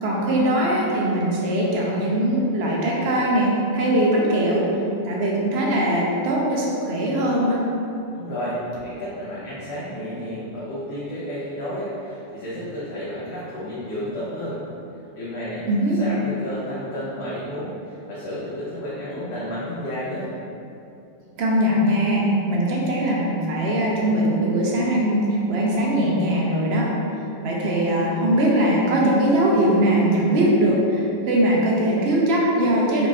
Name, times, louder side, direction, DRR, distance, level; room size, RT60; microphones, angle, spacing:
voice 1, 0.0-4.8 5.0-7.6 15.7-16.0 21.4-26.9 27.4-33.1, right 1 dB, 65° right, -3 dB, 0.8 m, -21 dB
voice 2, 8.1-14.6 15.2-15.6 16.0-20.3, equal, 65° left, -9 dB, 0.9 m, -31 dB
3.9 x 3.1 x 2.3 m, 2.7 s
omnidirectional pair, 1.2 m